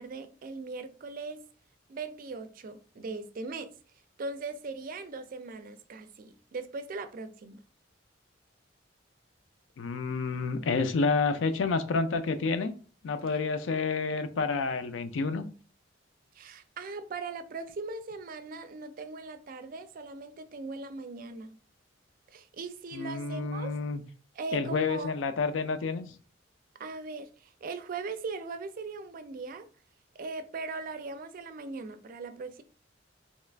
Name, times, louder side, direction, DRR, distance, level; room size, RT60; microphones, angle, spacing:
voice 1, 0.0-1.4 1.9-3.7 4.2-7.6 16.3-21.6 22.3-23.8 24.3-25.1 26.8-29.7 30.1-32.6, right 3 dB, 45° right, 0.4 m, -39 dB
voice 2, 9.8-12.7 13.0-15.5 22.9-24.0 24.5-26.1, left 4 dB, 80° left, 0.4 m, -29 dB
3.0 x 2.4 x 3.3 m
head